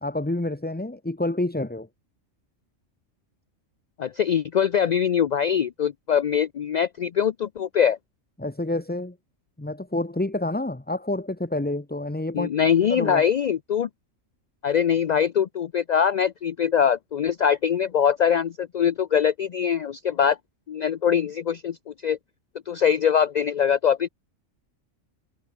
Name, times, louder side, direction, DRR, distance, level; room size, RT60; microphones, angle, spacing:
voice 1, 0.0-1.9 8.4-9.2 9.6-12.5 12.9-13.3, left 2 dB, 10° left, 0.8 m, -28 dB
voice 2, 4.0-8.0 12.3-13.9 14.6-20.4 20.7-22.2 22.7-24.1, left 8 dB, 65° left, 0.4 m, -23 dB
omnidirectional pair, 1.3 m